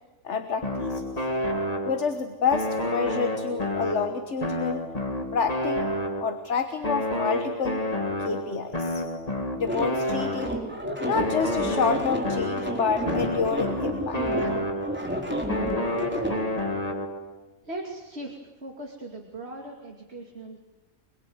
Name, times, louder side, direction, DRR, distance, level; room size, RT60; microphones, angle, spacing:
voice 1, 0.2-1.2 1.8-4.8 5.3-5.9 6.2-7.8 8.2-9.0 9.6-10.6 11.0-14.2, left 5 dB, 55° left, 8 dB, 1.6 m, -28 dB
sound 1, 0.6-2.2 2.5-6.5 6.8-10.7 11.2-15.1 15.5-17.3, left 1 dB, 25° left, 2.3 m, -29 dB
sound 2, 9.7-16.4, equal, 5° right, 4.3 m, -30 dB
voice 2, 17.6-20.6, right 1 dB, 50° right, 1 dB, 3.0 m, -39 dB
25.5 x 22.5 x 9.5 m, 1.1 s
omnidirectional pair, 1.4 m